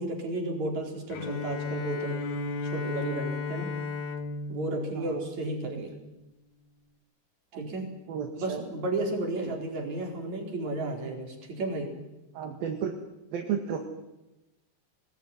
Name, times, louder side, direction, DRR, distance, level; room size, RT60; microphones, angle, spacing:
voice 1, 0.0-2.2 2.7-3.7 4.5-5.9 7.6-8.0 8.4-12.0, right 2 dB, 45° right, 2 dB, 5.6 m, -33 dB
Bowed string instrument, 1.1-6.0, left 4 dB, 55° left, 2.7 m, -35 dB
voice 2, 8.1-8.6 9.4-9.5 12.3-12.9 13.3-13.8, right 7 dB, 70° right, 3 dB, 3.6 m, -33 dB
25.0 x 20.0 x 9.5 m, 0.98 s
omnidirectional pair, 4.5 m